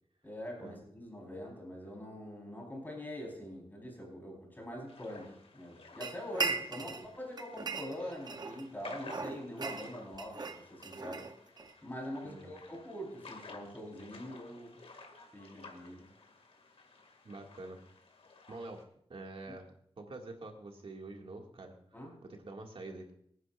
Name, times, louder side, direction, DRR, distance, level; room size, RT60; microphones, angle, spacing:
voice 1, 0.2-11.3 11.8-14.8 15.3-16.1 19.5-19.6 21.9-22.2, equal, 20° left, -1 dB, 4.3 m, -44 dB
sound 1, 4.9-18.8, left 3 dB, 75° left, 2.2 m, -54 dB
sound 2, 6.0-7.1 7.4-8.7 9.1-11.7, right 4 dB, 45° right, 0.9 m, -38 dB
voice 2, 12.2-12.6 17.2-17.8 18.5-18.8 19.1-19.7 20.0-21.8 22.2-23.1, right 2 dB, 65° right, 2 dB, 2.1 m, -46 dB
25.5 x 9.8 x 2.5 m, 0.68 s
wide cardioid pair, 125°, 10 cm